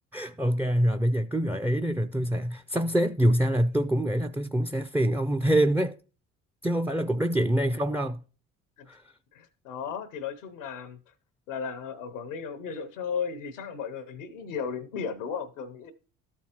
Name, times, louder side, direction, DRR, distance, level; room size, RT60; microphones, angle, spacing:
voice 1, 0.1-6.0 6.6-8.2 8.9-9.0, right 1 dB, 5° right, 0.4 m, -25 dB
voice 2, 9.3-11.1 11.5-15.9, left 6 dB, 85° left, 0.8 m, -35 dB
13.5 x 4.5 x 2.9 m
hypercardioid pair, 50°, 38 cm